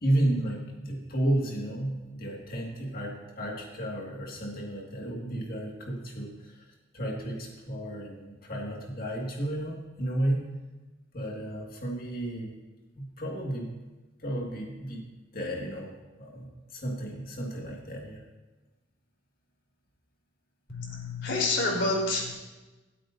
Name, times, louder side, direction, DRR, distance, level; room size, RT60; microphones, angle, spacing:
voice 1, 0.0-6.7 6.9-10.5 11.1-12.5 13.0-13.8 14.2-15.0 15.3-15.9 16.2-18.2, right 1 dB, 45° left, -2 dB, 2.1 m, -32 dB
voice 2, 20.7-22.3, left 2 dB, 60° left, -2 dB, 4.0 m, -28 dB
26.0 x 8.7 x 2.7 m, 1.2 s
head